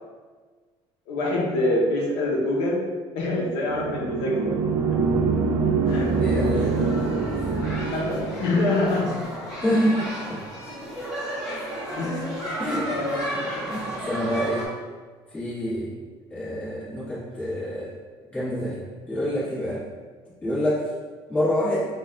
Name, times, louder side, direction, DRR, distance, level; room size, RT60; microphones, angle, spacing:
voice 1, 1.1-2.9 3.1-4.4 4.9-5.0 5.8-6.1 7.9-9.3 11.9-12.3 12.8-13.4, left 2 dB, 75° left, -3 dB, 0.7 m, -25 dB
sound 1, 3.6-8.6, right 4 dB, 45° right, 0.4 m, -24 dB
sound 2, 5.8-14.7, right 1 dB, 5° right, 1.0 m, -33 dB
voice 2, 6.2-6.9 9.6-10.4 12.6-13.0 13.7-14.7 15.3-15.9 16.3-17.9 18.3-19.8 20.4-20.9 21.3-21.8, equal, 15° left, -11 dB, 1.4 m, -27 dB
5.8 x 2.3 x 2.4 m, 1.4 s
cardioid pair, 175°, 10 cm